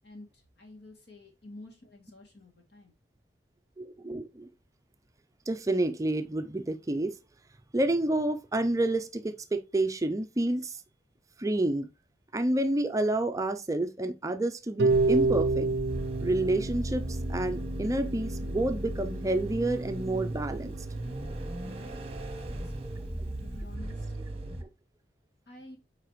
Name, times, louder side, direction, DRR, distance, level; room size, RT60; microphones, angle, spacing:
voice 1, 0.0-2.9 21.6-24.1 25.5-25.8, left 2 dB, 70° left, 2.4 m, -51 dB
voice 2, 3.8-4.5 5.5-7.1 7.7-10.8 11.4-11.9 12.3-15.7 16.2-20.8 24.6-24.7, right 1 dB, 20° right, 0.4 m, -29 dB
Harp, 14.8-20.9, right 3 dB, 90° right, 0.4 m, -30 dB
sound 1, 14.9-24.6, right 1 dB, 35° right, 1.0 m, -36 dB
8.0 x 4.8 x 3.0 m
head